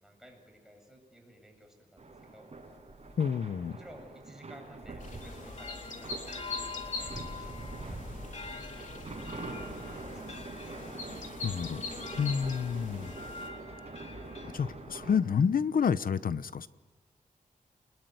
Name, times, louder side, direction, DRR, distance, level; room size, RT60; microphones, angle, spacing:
voice 1, 0.0-2.5 3.7-6.3 6.7-9.1 9.5-10.5 12.4-12.6, equal, 5° right, 2 dB, 7.7 m, -55 dB
sound 1, 2.0-15.2, right 3 dB, 45° right, 6.4 m, -45 dB
voice 2, 3.2-3.8 11.4-11.8 12.2-13.1 14.4-16.7, left 6 dB, 80° left, 14 dB, 0.9 m, -29 dB
sound 2, 5.0-13.5, left 3 dB, 65° left, 3.8 m, -43 dB
sound 3, 5.2-15.1, left 4 dB, 45° left, 2.5 m, -47 dB
29.0 x 21.0 x 9.5 m, 1.3 s
wide cardioid pair, 85°, 15 cm